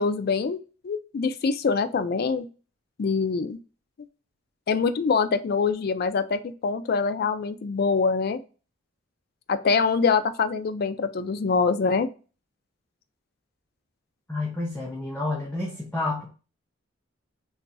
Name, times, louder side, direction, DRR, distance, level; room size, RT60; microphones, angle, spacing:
voice 1, 0.0-2.5 3.0-3.6 4.7-8.4 9.5-12.1, left 5 dB, 45° left, 10 dB, 0.3 m, -24 dB
voice 2, 14.3-16.3, left 2 dB, 5° left, -4 dB, 0.7 m, -29 dB
3.0 x 2.4 x 4.0 m, 0.35 s
head